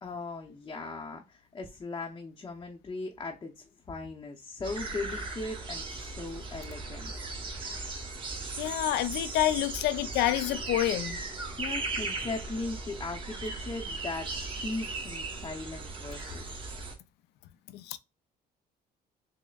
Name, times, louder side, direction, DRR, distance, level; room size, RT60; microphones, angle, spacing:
voice 1, 0.0-7.1 11.6-16.5, left 3 dB, 25° left, 0.7 m, -38 dB
sound 1, 4.6-16.9, right 3 dB, 30° right, 1.2 m, -37 dB
voice 2, 8.6-11.2 17.7-18.0, left 13 dB, 80° left, 0.4 m, -28 dB
6.1 x 2.1 x 2.3 m
cardioid pair, 110°, 17 cm